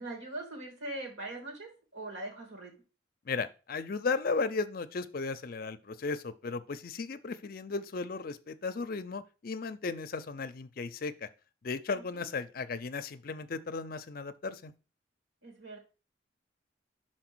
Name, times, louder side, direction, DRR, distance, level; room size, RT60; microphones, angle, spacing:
voice 1, 0.0-2.7 12.1-12.2 15.4-15.8, right 2 dB, 85° right, 2 dB, 2.8 m, -41 dB
voice 2, 3.3-11.3 11.6-14.7, left 4 dB, 50° left, 12 dB, 0.5 m, -35 dB
5.8 x 4.4 x 6.1 m, 0.34 s
head